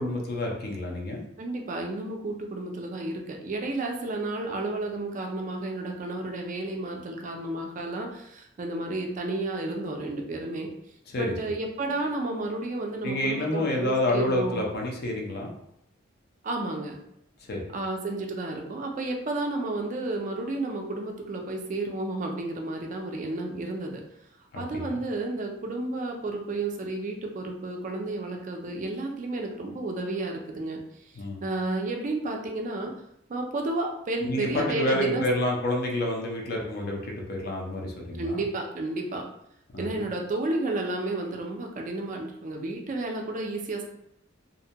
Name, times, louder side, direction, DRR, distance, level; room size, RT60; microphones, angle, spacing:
voice 1, 0.0-1.2 11.1-11.3 13.0-15.5 17.5-17.6 24.5-25.0 31.1-31.4 34.2-38.4 39.7-40.0, left 1 dB, 55° left, 0 dB, 0.5 m, -29 dB
voice 2, 1.4-10.7 11.2-14.6 16.4-17.0 17.7-24.0 24.6-30.8 31.4-32.9 33.3-35.5 38.1-39.3 39.8-43.8, right 2 dB, 40° right, 2 dB, 0.4 m, -32 dB
2.5 x 2.1 x 2.8 m, 0.75 s
head